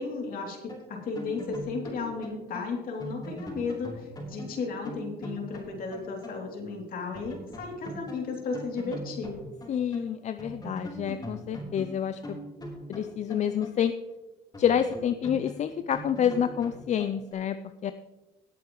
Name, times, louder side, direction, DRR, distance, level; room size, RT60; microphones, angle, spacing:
voice 1, 0.0-9.4, left 4 dB, 60° left, 1 dB, 3.0 m, -34 dB
sound 1, 0.7-6.4 6.7-6.8 7.1-10.1 10.4-14.1 14.5-17.3, equal, 25° left, 3.9 m, -41 dB
voice 2, 9.7-12.4 12.9-13.9 14.6-17.9, left 9 dB, 45° left, 10 dB, 0.5 m, -28 dB
18.0 x 8.4 x 3.2 m, 1.1 s
cardioid pair, 110°, 17 cm